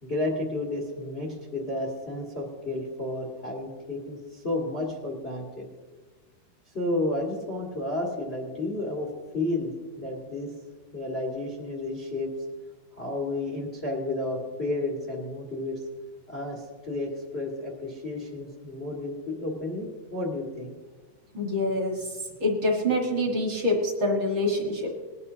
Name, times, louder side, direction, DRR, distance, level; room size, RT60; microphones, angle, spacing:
voice 1, 0.0-5.6 6.7-9.1 9.3-10.5 10.9-12.3 13.0-15.8 16.3-20.7, left 2 dB, 60° left, -1 dB, 0.6 m, -32 dB
voice 2, 21.3-22.1 22.4-24.9, left 1 dB, 55° right, 1 dB, 1.3 m, -26 dB
20.0 x 11.0 x 2.8 m, 1.4 s
omnidirectional pair, 4.5 m